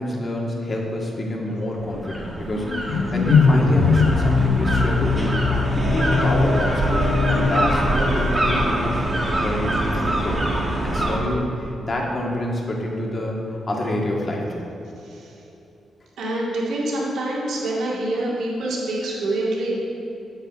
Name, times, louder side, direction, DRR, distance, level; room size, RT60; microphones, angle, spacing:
voice 1, 0.0-9.0 9.3-14.6, left 1 dB, 40° left, -2 dB, 1.9 m, -27 dB
sound 1, 1.8-11.2, right 1 dB, 30° right, 2.1 m, -24 dB
sound 2, 2.6-8.9, left 4 dB, 85° left, 0.7 m, -21 dB
voice 2, 15.0-15.4 16.2-19.8, right 1 dB, 80° right, -5 dB, 2.1 m, -26 dB
9.0 x 7.9 x 5.1 m, 3.0 s
cardioid pair, 85°, 0 cm